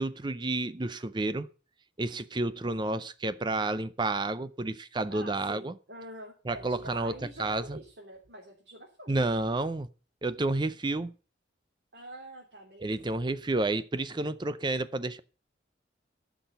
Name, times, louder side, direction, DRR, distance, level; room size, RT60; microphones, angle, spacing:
voice 1, 0.0-1.5 2.0-5.7 6.5-7.8 9.1-9.9 10.2-11.1 12.8-15.2, right 2 dB, 25° right, 0.5 m, -30 dB
voice 2, 5.1-9.3 11.9-13.0, right 1 dB, 60° right, 3.1 m, -46 dB
14.0 x 6.1 x 8.0 m
head